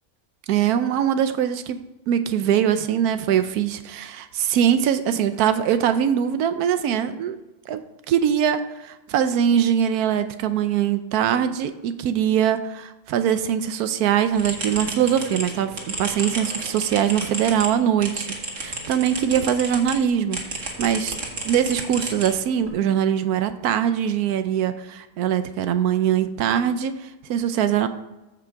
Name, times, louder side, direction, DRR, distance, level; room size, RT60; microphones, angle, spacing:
voice 1, 0.5-1.8 2.1-7.4 7.7-7.8 8.1-21.1 21.4-27.9, right 9 dB, 90° right, 10 dB, 1.2 m, -22 dB
sound 1, 14.3-20.0 20.3-22.7, right 2 dB, 55° right, 2.1 m, -32 dB
14.0 x 6.1 x 4.6 m, 1.0 s
omnidirectional pair, 1.6 m